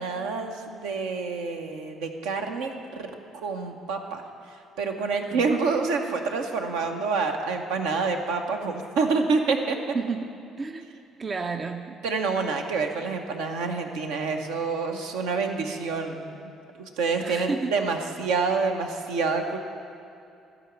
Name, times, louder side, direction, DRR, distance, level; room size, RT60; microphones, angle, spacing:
voice 1, 0.0-4.2 4.8-9.8 12.0-16.5 16.8-19.6, right 4 dB, 65° right, 4 dB, 0.8 m, -27 dB
voice 2, 9.9-10.3 10.6-10.9 11.2-12.0 17.2-17.8, right 4 dB, 35° right, 6 dB, 0.5 m, -31 dB
14.0 x 5.1 x 7.2 m, 2.7 s
figure-of-eight pair, 50°, 0 cm